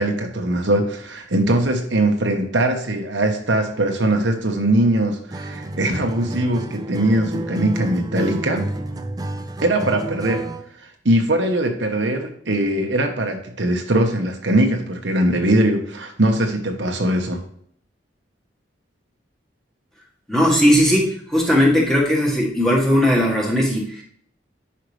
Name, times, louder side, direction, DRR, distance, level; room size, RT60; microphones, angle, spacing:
voice 1, 0.0-8.7 9.6-10.4 11.0-17.4, right 1 dB, 75° right, 3 dB, 1.2 m, -21 dB
Acoustic guitar, 5.3-10.7, right 1 dB, 20° right, 0.4 m, -30 dB
voice 2, 20.3-24.0, equal, 5° left, -4 dB, 1.7 m, -18 dB
10.0 x 5.7 x 3.3 m, 0.63 s
head